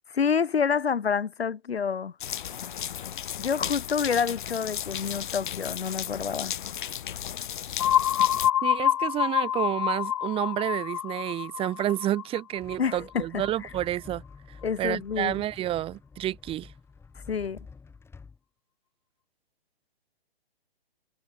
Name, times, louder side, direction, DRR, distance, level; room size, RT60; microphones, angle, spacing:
voice 1, 0.1-2.1 3.4-6.5 12.8-13.7 14.6-15.4 17.3-17.6, left 6 dB, 80° left, 1.0 m, -28 dB
sound 1, 2.2-8.5, left 10 dB, 55° left, 1.6 m, -35 dB
sound 2, 7.8-13.5, left 11 dB, 30° left, 0.4 m, -27 dB
voice 2, 8.6-14.2 14.8-16.7, right 13 dB, 20° right, 2.1 m, -30 dB
sound 3, 12.6-18.4, left 5 dB, 10° left, 6.0 m, -49 dB
figure-of-eight pair, 130°, 30 cm